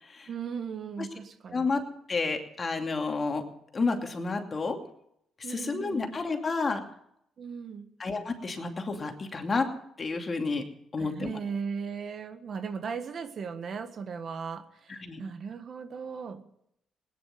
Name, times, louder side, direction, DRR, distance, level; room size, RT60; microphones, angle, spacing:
voice 1, 0.3-1.7 5.4-6.1 7.4-7.9 11.0-16.4, right 6 dB, 55° right, 9 dB, 1.5 m, -37 dB
voice 2, 1.5-1.8 2.1-3.4 3.7-4.8 5.5-6.8 8.0-9.7 10.0-10.6 10.9-11.4 14.9-15.2, left 4 dB, 35° left, 4 dB, 2.6 m, -30 dB
18.0 x 10.0 x 7.8 m, 0.75 s
cardioid pair, 90°, 0 cm